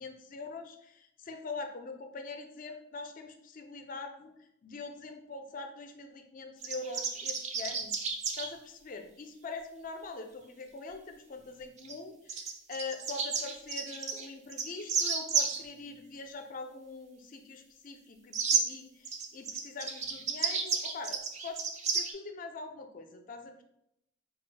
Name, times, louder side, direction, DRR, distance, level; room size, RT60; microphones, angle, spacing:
voice 1, 0.0-4.3 4.6-7.9 8.4-21.6 21.9-23.6, left 3 dB, 40° left, 5 dB, 0.4 m, -43 dB
sound 1, 6.6-8.5 11.8-11.9 12.3-15.6 18.3-18.6 19.0-22.1, right 5 dB, 35° right, 0.3 m, -32 dB
4.2 x 2.0 x 3.7 m, 0.80 s
head